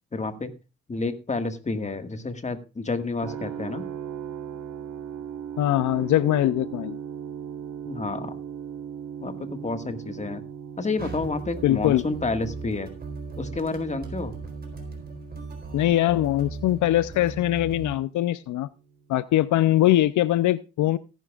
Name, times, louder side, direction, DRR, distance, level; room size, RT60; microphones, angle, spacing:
voice 1, 0.1-0.5 0.9-3.8 7.8-8.4 9.2-10.4 10.8-12.9 13.4-14.3, left 3 dB, 25° left, 7 dB, 1.7 m, -30 dB
sound 1, 3.2-19.1, right 8 dB, 65° right, 1.3 m, -39 dB
voice 2, 5.6-7.0 11.6-12.0 15.7-18.7 19.1-21.0, left 14 dB, 75° left, 15 dB, 0.6 m, -22 dB
sound 2, 11.0-18.0, right 3 dB, 30° right, 4.0 m, -38 dB
17.5 x 10.5 x 2.4 m, 0.29 s
cardioid pair, 90°, 30 cm